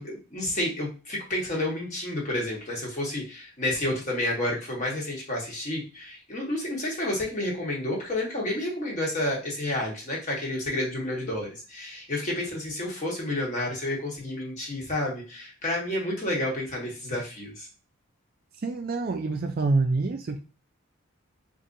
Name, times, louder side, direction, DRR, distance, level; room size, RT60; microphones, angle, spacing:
voice 1, 0.0-17.7, left 1 dB, 35° left, -3 dB, 1.2 m, -30 dB
voice 2, 18.6-20.4, right 3 dB, 45° right, 5 dB, 0.3 m, -26 dB
4.1 x 2.5 x 2.6 m, 0.34 s
head